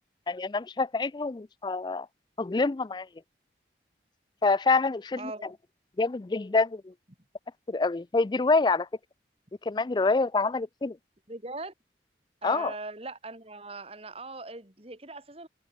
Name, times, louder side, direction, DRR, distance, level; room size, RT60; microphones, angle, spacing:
voice 1, 0.3-2.1 2.4-3.1 4.4-5.3 6.0-6.9 7.7-8.9 9.7-11.0 12.4-12.7, left 3 dB, 25° left, 0.4 m, -26 dB
voice 2, 5.2-5.5 11.3-11.7 12.4-15.5, right 2 dB, 35° right, 3.2 m, -40 dB
head